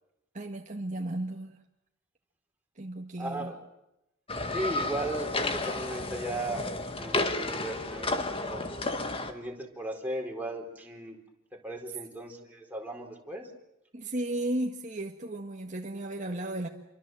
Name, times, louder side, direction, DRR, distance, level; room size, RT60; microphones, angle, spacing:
voice 1, 0.3-1.6 2.8-3.5 13.9-16.7, right 1 dB, 35° right, 2 dB, 1.7 m, -34 dB
voice 2, 3.2-3.6 4.5-8.1 8.4-8.7 9.3-11.2 11.5-13.5, right 1 dB, 10° right, 1 dB, 4.3 m, -37 dB
sound 1, 4.3-9.3, left 2 dB, 25° left, 1.9 m, -32 dB
28.0 x 24.5 x 7.8 m, 0.88 s
head